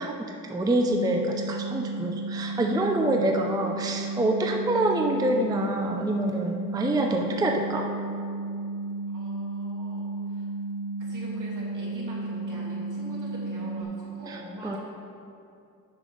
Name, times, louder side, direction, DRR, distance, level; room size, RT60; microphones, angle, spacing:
voice 1, 0.0-7.8 14.3-14.8, right 1 dB, 10° right, 2 dB, 0.4 m, -26 dB
sound 1, 0.9-13.8, right 2 dB, 80° left, 0.7 m, -33 dB
voice 2, 9.1-10.5 11.0-14.8, right 1 dB, 65° right, -5 dB, 1.9 m, -42 dB
7.1 x 5.1 x 5.3 m, 2.5 s
wide cardioid pair, 140°, 33 cm